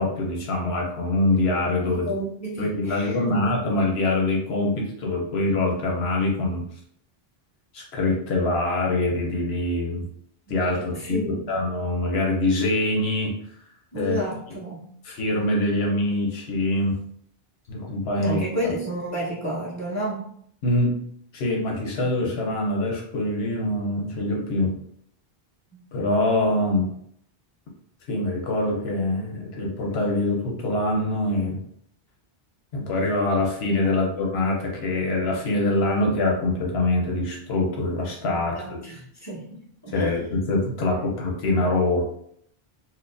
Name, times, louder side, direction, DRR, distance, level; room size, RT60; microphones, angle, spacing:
voice 1, 0.0-2.1 2.6-6.6 7.7-10.1 10.5-13.4 13.9-14.2 15.0-17.0 17.7-18.4 20.6-21.0 21.3-24.8 25.9-26.9 28.1-31.6 32.7-38.8 39.9-42.1, left 2 dB, 85° left, -1 dB, 1.0 m, -24 dB
voice 2, 1.9-3.4 10.5-10.6 10.9-11.6 13.9-14.8 18.2-20.3 25.7-25.8 33.8-33.9 38.3-40.3 41.0-41.1, right 1 dB, 15° left, -7 dB, 1.1 m, -31 dB
4.3 x 2.1 x 2.5 m, 0.66 s
omnidirectional pair, 1.0 m